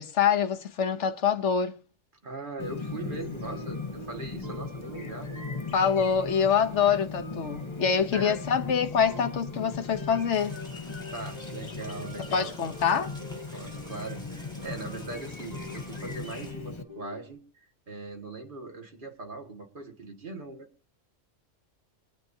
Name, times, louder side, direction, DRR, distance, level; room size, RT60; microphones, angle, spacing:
voice 1, 0.0-1.7 5.7-10.6 12.3-13.1, left 7 dB, 70° left, 1.2 m, -25 dB
voice 2, 2.2-5.4 6.8-7.0 8.1-8.5 11.1-12.8 13.5-20.7, right 3 dB, 40° right, 2.1 m, -40 dB
Chirp tweet, 2.6-16.8, left 4 dB, 25° left, 0.9 m, -39 dB
sound 1, 2.6-17.3, left 1 dB, 20° right, 7.1 m, -47 dB
sound 2, 10.3-16.5, equal, 5° left, 2.0 m, -50 dB
24.5 x 9.1 x 2.7 m
omnidirectional pair, 1.3 m